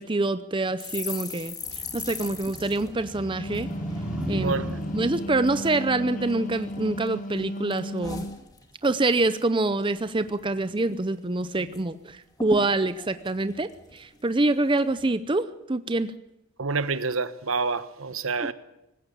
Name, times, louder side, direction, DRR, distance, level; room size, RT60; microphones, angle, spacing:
voice 1, 0.0-1.6 1.9-3.7 4.3-4.6 4.9-8.3 8.8-16.1 18.4-18.5, right 2 dB, 25° right, 0.6 m, -26 dB
sound 1, 0.8-4.3 4.6-4.9 5.1-5.8 6.3-7.1 7.4-9.0 9.3-9.6 9.8-10.4 10.8-10.9 11.1-11.8 12.1-12.2 12.4-14.3 14.8-15.1, left 3 dB, 20° left, 2.3 m, -39 dB
sound 2, 1.6-7.0, equal, 5° right, 3.5 m, -37 dB
Wind instrument woodwind instrument, 3.1-8.4, equal, 40° left, 0.7 m, -36 dB
voice 2, 4.3-4.8 16.6-18.5, right 4 dB, 75° right, 1.2 m, -28 dB
20.0 x 16.0 x 8.8 m
head